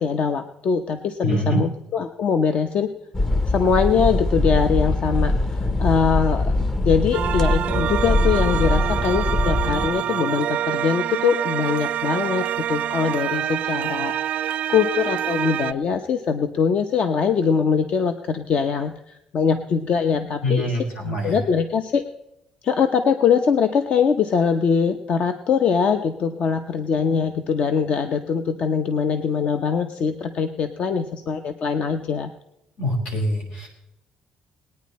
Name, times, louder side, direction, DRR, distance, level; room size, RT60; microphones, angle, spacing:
voice 1, 0.0-2.9 3.4-6.5 6.8-20.8 21.0-22.0 22.6-32.3, left 6 dB, 55° left, 8 dB, 0.7 m, -22 dB
voice 2, 1.2-1.6 20.4-21.4 32.8-33.7, equal, 80° left, 0 dB, 4.9 m, -24 dB
sound 1, 3.1-9.9, left 2 dB, 20° left, 0.7 m, -22 dB
sound 2, 7.1-15.7, right 11 dB, 60° right, 0.4 m, -26 dB
20.5 x 9.4 x 4.2 m, 0.87 s
cardioid pair, 125°, 2 cm